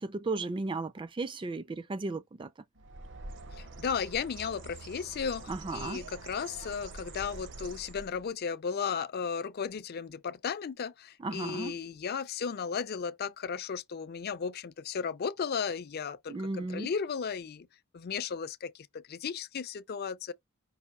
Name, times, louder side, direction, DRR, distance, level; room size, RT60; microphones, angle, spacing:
voice 1, 0.0-2.5 5.5-6.0 11.2-11.7 16.3-16.9, right 3 dB, 25° right, 0.4 m, -35 dB
Bird, 2.8-8.3, right 2 dB, 60° right, 0.7 m, -46 dB
voice 2, 3.5-17.7 17.9-20.3, left 6 dB, 45° left, 0.4 m, -35 dB
5.5 x 2.6 x 3.6 m
head